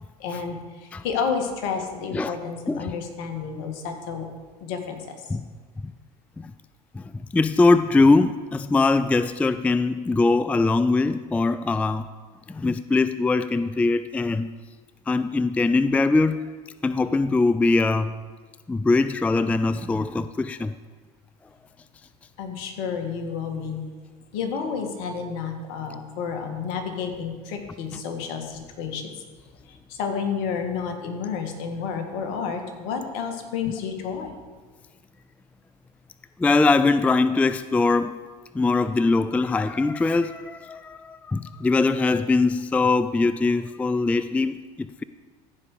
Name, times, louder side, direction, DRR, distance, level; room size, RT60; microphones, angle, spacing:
voice 1, 0.2-4.3 4.6-5.3 22.4-23.8 24.3-29.1 29.7-34.3, left 6 dB, 65° left, 5 dB, 1.8 m, -30 dB
voice 2, 6.9-12.1 12.5-14.5 15.1-16.4 16.8-18.1 18.7-20.7 36.4-38.2 38.5-45.0, left 3 dB, 5° left, 13 dB, 0.3 m, -22 dB
15.0 x 5.1 x 6.6 m, 1.4 s
hypercardioid pair, 80°, 20 cm